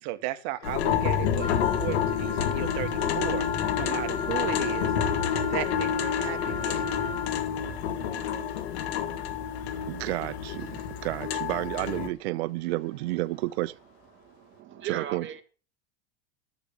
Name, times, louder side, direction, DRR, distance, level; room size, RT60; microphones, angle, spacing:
voice 1, 0.0-3.4 3.8-4.9 5.5-6.8, right 15 dB, 55° right, 1.6 m, -35 dB
sound 1, 0.6-12.1, left 8 dB, 85° left, 1.9 m, -29 dB
sound 2, 0.6-14.6, left 5 dB, 55° left, 4.9 m, -51 dB
Wind instrument woodwind instrument, 1.4-7.4, left 4 dB, 15° left, 4.4 m, -35 dB
voice 2, 9.9-13.8 14.8-15.3, right 19 dB, 80° right, 0.5 m, -31 dB
voice 3, 14.2-15.4, right 10 dB, 35° right, 2.3 m, -38 dB
12.0 x 7.1 x 7.0 m
supercardioid pair, 125°, 31 cm